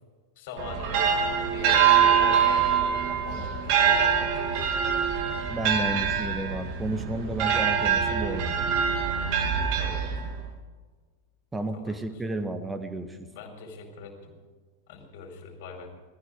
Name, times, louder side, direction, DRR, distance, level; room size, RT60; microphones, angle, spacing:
voice 1, 0.4-1.1 1.5-3.0 3.2-4.7 9.8-10.1 11.7-11.9 13.3-14.3 14.9-15.9, left 4 dB, 50° left, 3 dB, 4.6 m, -42 dB
sound 1, 0.6-10.5, right 7 dB, 45° right, 2.6 m, -24 dB
voice 2, 5.5-8.6 11.5-13.3, right 2 dB, 10° right, 8 dB, 1.7 m, -32 dB
19.0 x 14.5 x 4.9 m, 1.4 s
figure-of-eight pair, 90°, 0 cm